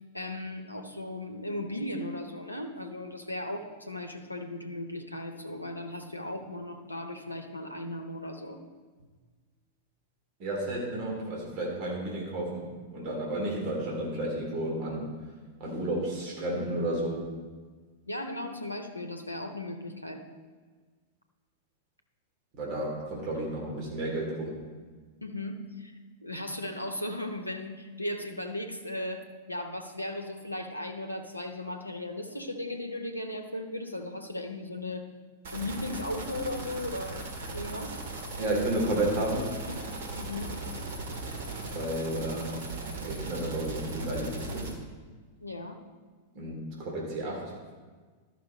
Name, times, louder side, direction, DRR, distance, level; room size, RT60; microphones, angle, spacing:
voice 1, 0.1-8.6 18.1-20.2 25.2-25.9 26.2-35.1 35.5-38.0 40.2-40.6 45.4-45.8, left 1 dB, 85° left, 5 dB, 0.8 m, -37 dB
voice 2, 10.4-12.6 12.9-15.1 15.6-17.3 22.5-24.6 38.4-39.5 41.7-42.5 43.0-44.7 46.3-47.5, right 1 dB, 40° right, -2 dB, 2.7 m, -32 dB
sound 1, 35.4-44.7, right 2 dB, 60° right, 1.7 m, -38 dB
12.0 x 5.9 x 4.2 m, 1.4 s
figure-of-eight pair, 95°, 0 cm